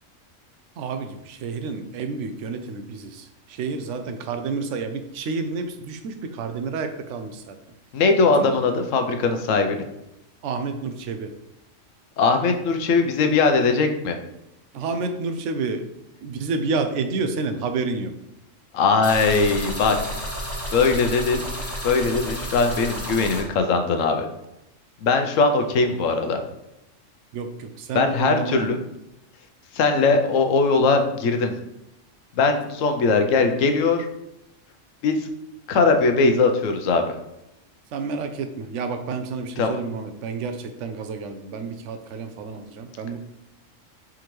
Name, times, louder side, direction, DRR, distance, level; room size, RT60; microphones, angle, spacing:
voice 1, 0.8-7.6 8.3-8.5 10.4-11.3 14.7-15.9 16.2-18.1 27.3-28.7 37.9-43.2, right 4 dB, 70° right, 8 dB, 0.9 m, -29 dB
voice 2, 7.9-9.8 12.2-14.2 18.7-20.0 20.7-21.5 21.8-24.3 25.0-26.4 27.9-28.8 29.7-31.5 32.4-34.1 35.0-35.3 35.7-37.1 39.6-39.8, left 4 dB, 80° left, 5 dB, 1.0 m, -20 dB
sound 1, 19.0-23.4, equal, 15° left, 0.9 m, -31 dB
4.6 x 3.7 x 3.0 m, 0.87 s
omnidirectional pair, 1.3 m